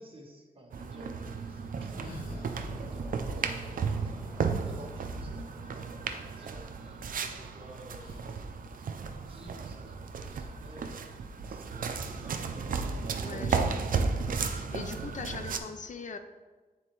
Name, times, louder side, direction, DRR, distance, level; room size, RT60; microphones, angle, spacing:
voice 1, 0.0-12.6 12.9-14.0, equal, 35° right, 0 dB, 1.2 m, -52 dB
sound 1, 0.7-15.6, right 5 dB, 65° right, 0.5 m, -34 dB
sound 2, 1.2-2.8 3.7-4.6 6.1-6.2 6.4-7.4 8.0-8.5, left 2 dB, 75° left, 0.8 m, -50 dB
sound 3, 1.9-8.3, left 2 dB, 5° right, 0.7 m, -49 dB
voice 2, 13.2-14.1 14.5-16.2, left 5 dB, 55° left, 8 dB, 0.4 m, -41 dB
8.6 x 3.8 x 3.0 m, 1.3 s
wide cardioid pair, 95°, 15 cm